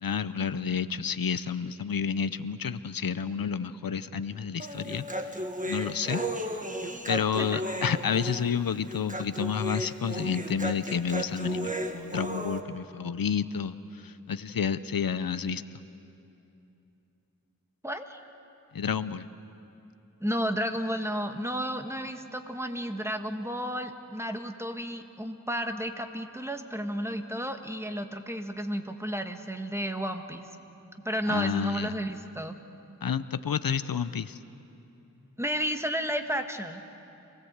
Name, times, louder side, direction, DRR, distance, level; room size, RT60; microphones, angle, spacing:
voice 1, 0.0-5.3 5.7-6.6 7.1-15.8 18.7-19.3 31.3-31.9 33.0-34.4, left 7 dB, 85° left, 14 dB, 0.6 m, -30 dB
Human voice, 4.6-12.6, right 1 dB, 25° right, 1.5 m, -34 dB
voice 2, 17.8-18.2 20.2-30.5 31.0-32.6 35.4-36.8, equal, 10° right, 6 dB, 1.4 m, -32 dB
26.5 x 17.5 x 8.0 m, 2.9 s
wide cardioid pair, 50°, 34 cm